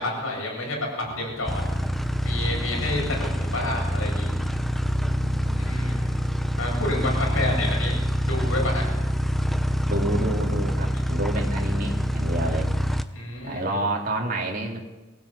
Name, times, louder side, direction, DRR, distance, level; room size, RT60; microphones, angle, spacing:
voice 1, 0.0-1.6 2.2-4.3 5.6-6.1 6.6-7.9 8.2-8.8 13.1-13.6, left 1 dB, 85° left, -1 dB, 8.0 m, -29 dB
voice 2, 1.0-1.8 2.4-3.3 5.0-6.2 9.9-12.7 13.4-14.8, right 1 dB, 40° right, 1 dB, 3.5 m, -30 dB
sound 1, 1.5-13.0, equal, ahead, 0.8 m, -26 dB
22.5 x 16.5 x 8.6 m, 1.1 s
head